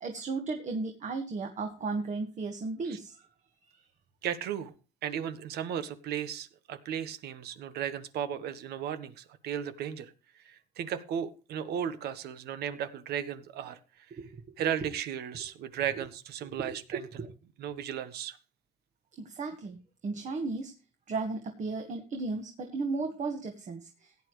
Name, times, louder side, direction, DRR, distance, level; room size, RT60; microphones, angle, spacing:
voice 1, 0.0-3.2 14.1-14.4 16.6-16.8 17.2-17.3 19.2-19.8 20.0-20.7 21.1-24.1, right 3 dB, 45° right, 4 dB, 1.8 m, -35 dB
voice 2, 4.2-4.7 5.0-14.2 14.6-17.2 17.6-18.4, right 9 dB, 75° right, 12 dB, 1.3 m, -35 dB
16.5 x 9.5 x 3.2 m, 0.33 s
cardioid pair, 110°, 17 cm